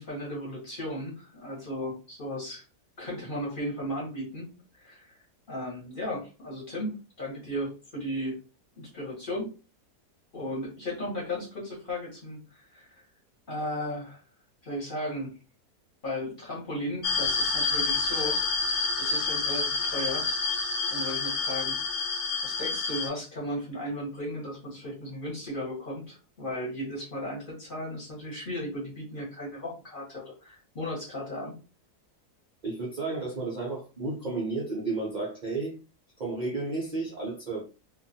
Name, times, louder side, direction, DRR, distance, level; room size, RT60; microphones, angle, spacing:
voice 1, 0.0-2.6 3.0-5.2 5.5-8.4 8.8-9.5 10.3-12.9 13.5-14.2 14.6-15.4 16.0-18.4 19.0-20.6 20.9-22.0 22.4-31.6, left 1 dB, 35° left, 1.1 m, -35 dB
sound 1, 17.0-23.1, left 4 dB, 65° left, 0.7 m, -28 dB
voice 2, 32.6-35.8 36.2-37.6, right 3 dB, 60° right, 0.4 m, -32 dB
2.6 x 2.3 x 2.6 m
omnidirectional pair, 1.7 m